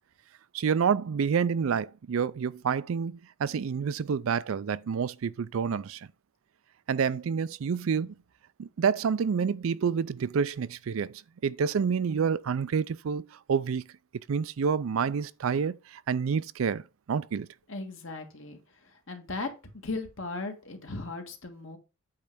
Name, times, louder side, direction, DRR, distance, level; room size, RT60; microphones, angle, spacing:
voice 1, 0.5-6.1 6.9-8.1 8.6-13.9 14.3-16.8 17.1-17.5, right 6 dB, 75° right, 0.4 m, -28 dB
voice 2, 17.7-19.5 19.8-21.8, left 3 dB, 65° left, 1.6 m, -37 dB
8.6 x 3.2 x 6.0 m
head